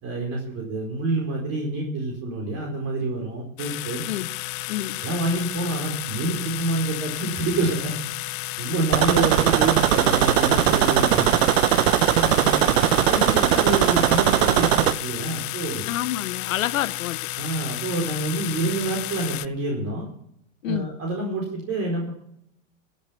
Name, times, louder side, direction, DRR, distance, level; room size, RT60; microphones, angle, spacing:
voice 1, 0.0-4.0 5.0-7.9 8.6-11.4 12.1-15.9 17.4-20.1 20.7-22.1, right 2 dB, 40° right, 4.6 m, -27 dB
sound 1, 3.6-19.5, left 21 dB, 40° left, 0.5 m, -32 dB
sound 2, 8.9-14.9, right 11 dB, 75° right, 1.0 m, -19 dB
voice 2, 15.9-17.2 20.6-20.9, left 12 dB, 85° left, 0.9 m, -28 dB
16.5 x 8.7 x 5.8 m
hypercardioid pair, 120°, 39 cm